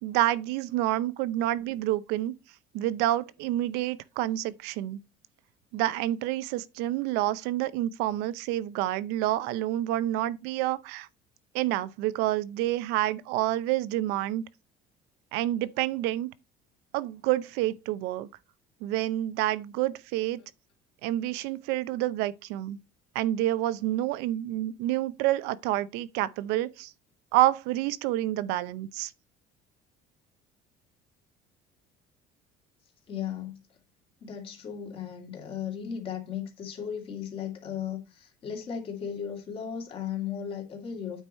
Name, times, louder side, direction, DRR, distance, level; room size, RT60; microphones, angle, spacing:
voice 1, 0.0-2.3 2.7-5.0 5.7-11.1 11.5-14.4 15.3-16.3 16.9-18.3 18.8-20.4 21.0-22.8 23.1-26.9 27.3-29.1, right 14 dB, 75° right, 0.6 m, -28 dB
voice 2, 33.1-33.6 34.2-41.2, left 8 dB, 30° left, 2.4 m, -36 dB
8.9 x 4.7 x 4.2 m
cardioid pair, 175°, 17 cm